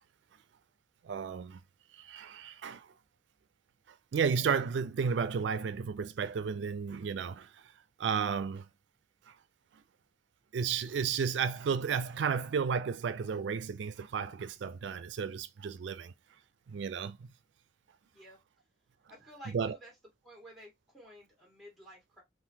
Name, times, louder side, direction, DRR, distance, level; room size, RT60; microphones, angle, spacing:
voice 1, 1.0-1.6 1.9-2.9 4.1-7.6 8.0-8.7 9.3-9.4 10.5-16.1 16.7-17.3 19.5-19.8, right 6 dB, 90° right, 0.4 m, -33 dB
voice 2, 19.1-19.9 20.2-22.2, equal, ahead, 1.6 m, -52 dB
3.7 x 2.6 x 2.7 m
head